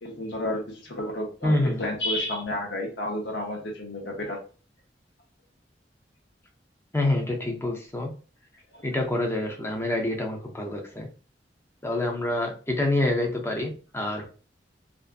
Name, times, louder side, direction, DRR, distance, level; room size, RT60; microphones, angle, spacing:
voice 1, 0.0-4.4 8.7-8.9, left 1 dB, 85° left, 1 dB, 0.8 m, -31 dB
voice 2, 1.4-1.8 6.9-8.1 8.8-11.1 11.8-14.3, left 1 dB, 15° left, 2 dB, 0.5 m, -27 dB
2.5 x 2.4 x 2.4 m, 0.36 s
head